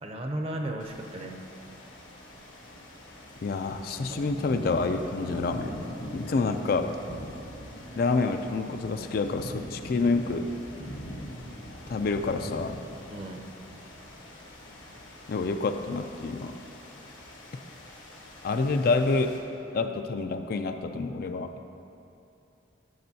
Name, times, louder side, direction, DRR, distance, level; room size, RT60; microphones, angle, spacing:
voice 1, 0.0-1.4 4.1-4.2 13.1-13.4, right 1 dB, 30° right, 2 dB, 0.6 m, -35 dB
sound 1, 0.8-19.4, equal, 85° left, 1.5 m, -42 dB
voice 2, 3.4-5.7 6.1-6.9 8.0-10.5 11.9-12.8 15.3-16.6 18.4-19.4 19.7-21.5, left 3 dB, 50° left, 7 dB, 0.4 m, -28 dB
12.0 x 7.7 x 2.7 m, 2.8 s
head